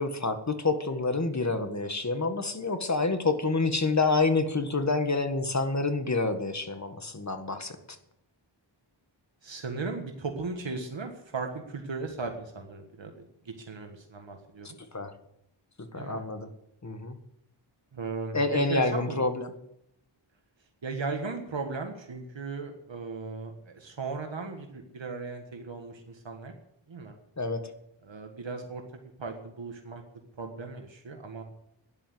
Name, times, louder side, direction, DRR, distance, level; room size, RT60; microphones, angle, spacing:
voice 1, 0.0-7.7 14.9-15.1 15.9-16.5 16.8-17.2 18.3-19.5 27.4-27.7, left 3 dB, 35° left, 8 dB, 1.7 m, -28 dB
voice 2, 9.4-14.7 15.9-16.2 17.9-19.3 20.8-26.5 26.9-27.2 28.0-30.0 30.4-31.4, right 4 dB, 70° right, 4 dB, 1.7 m, -37 dB
12.0 x 10.5 x 7.9 m, 0.79 s
wide cardioid pair, 85°, 46 cm